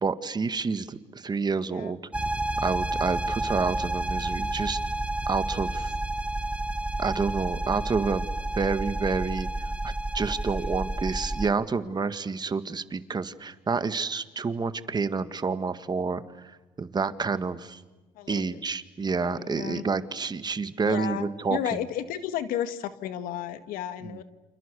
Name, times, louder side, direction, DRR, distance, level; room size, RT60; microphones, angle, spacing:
voice 1, 0.0-2.0 2.6-4.8 5.3-5.9 7.0-8.3 8.6-17.8 18.3-21.9 24.0-24.2, right 4 dB, 30° right, 11 dB, 1.8 m, -29 dB
sound 1, 2.1-11.5, right 2 dB, 10° right, 1.1 m, -30 dB
voice 2, 18.2-18.5 19.2-19.8 20.9-24.2, left 10 dB, 80° left, 11 dB, 1.8 m, -33 dB
29.0 x 27.5 x 6.9 m, 1.2 s
cardioid pair, 90°, 14 cm